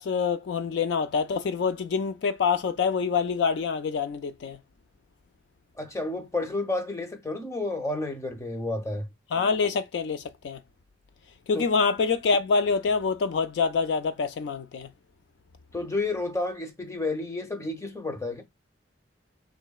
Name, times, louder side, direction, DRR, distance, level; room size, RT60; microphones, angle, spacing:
voice 1, 0.0-4.6 9.3-10.6 11.5-14.9, left 5 dB, 70° left, 0.3 m, -26 dB
voice 2, 5.8-9.1 11.5-11.6 15.7-18.4, left 2 dB, 15° left, 0.7 m, -31 dB
3.8 x 3.0 x 2.3 m
head